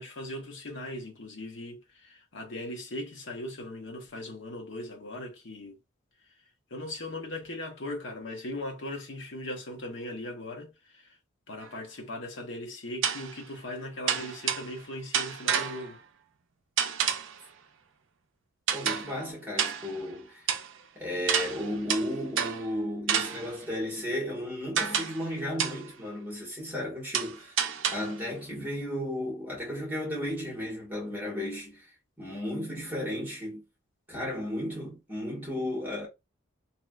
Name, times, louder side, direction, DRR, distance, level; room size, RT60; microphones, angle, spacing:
voice 1, 0.0-5.8 6.7-11.2 11.5-16.0, left 1 dB, 55° left, 0.9 m, -39 dB
sound 1, 11.6-11.7 13.0-13.4 14.1-14.8 15.1-16.0 16.8-17.4 18.7-19.2 19.6-20.0 20.5-20.7 21.3-22.7 23.1-23.6 24.8-25.3 25.6-25.9 27.1-28.2, right 8 dB, 60° right, 0.4 m, -30 dB
voice 2, 18.7-20.5 20.9-27.6 27.9-33.6 34.1-36.1, left 1 dB, 10° right, 1.5 m, -34 dB
3.1 x 3.0 x 2.3 m
head